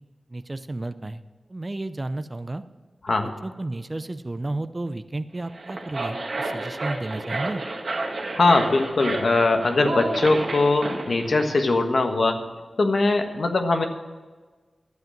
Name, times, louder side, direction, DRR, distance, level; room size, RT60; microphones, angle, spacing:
voice 1, 0.3-1.2 1.5-2.6 3.4-7.6, right 2 dB, 30° right, 11 dB, 0.6 m, -32 dB
sound 1, 5.4-11.6, right 2 dB, 65° right, 1.6 m, -31 dB
voice 2, 8.3-12.4 12.8-13.8, left 3 dB, 65° left, 5 dB, 1.3 m, -21 dB
12.0 x 8.0 x 7.4 m, 1.4 s
wide cardioid pair, 90°, 0 cm